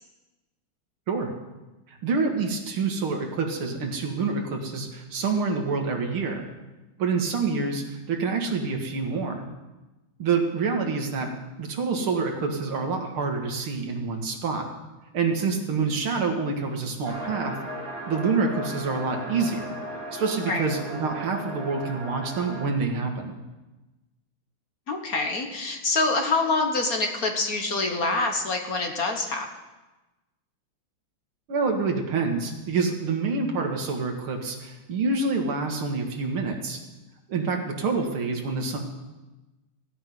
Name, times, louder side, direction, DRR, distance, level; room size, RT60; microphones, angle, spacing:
voice 1, 1.9-6.5 7.0-9.4 10.2-11.3 11.6-14.7 15.1-17.6 18.1-19.8 20.1-23.4 31.5-36.8 37.3-38.8, right 4 dB, 85° right, 2 dB, 2.6 m, -27 dB
sound 1, 17.0-22.7, equal, 65° right, 3.8 m, -36 dB
voice 2, 24.9-29.5, left 3 dB, 50° left, 3 dB, 1.6 m, -26 dB
16.5 x 5.8 x 9.3 m, 1.1 s
omnidirectional pair, 2.3 m